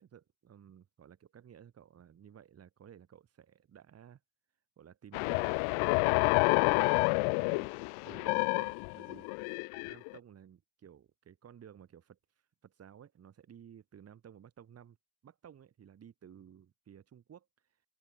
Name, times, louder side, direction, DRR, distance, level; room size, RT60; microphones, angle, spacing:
voice 1, 0.0-4.2 4.8-7.7 8.0-12.2 12.6-15.0 15.2-17.5, right 9 dB, 30° right, 4.5 m, -55 dB
sound 1, 5.1-10.2, left 38 dB, 80° left, 0.5 m, -29 dB
open air
cardioid pair, 160°, 48 cm